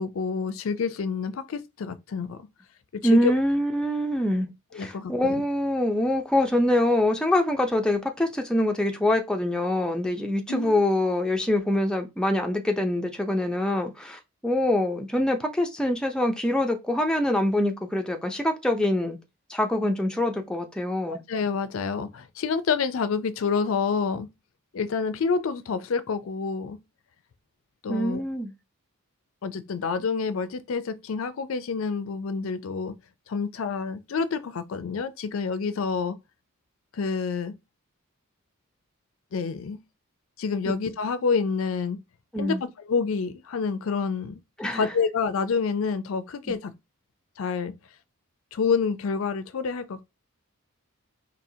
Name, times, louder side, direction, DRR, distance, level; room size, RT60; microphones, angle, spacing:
voice 1, 0.0-2.4 3.0-3.3 4.7-5.4 10.5-10.8 21.1-24.3 24.7-26.8 27.8-28.2 29.4-32.9 33.3-36.2 36.9-37.5 39.3-39.8 40.4-42.0 42.4-42.6 42.8-44.4 44.7-46.7 47.4-47.7 48.5-50.0, left 5 dB, 70° left, 0.4 m, -28 dB
voice 2, 3.0-4.5 4.8-19.2 19.5-21.2 27.9-28.5 42.3-42.6 44.6-44.8 46.5-46.6, left 1 dB, 5° left, 0.4 m, -24 dB
4.2 x 2.7 x 2.7 m
head